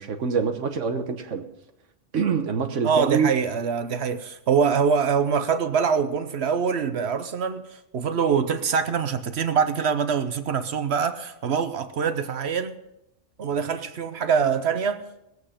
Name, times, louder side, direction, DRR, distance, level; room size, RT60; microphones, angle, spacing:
voice 1, 0.0-1.5 2.1-3.3, right 6 dB, 80° right, 1.4 m, -25 dB
voice 2, 2.8-7.6 7.9-12.8 13.4-15.3, right 6 dB, 60° right, 1.1 m, -24 dB
19.5 x 8.1 x 5.0 m
omnidirectional pair, 1.2 m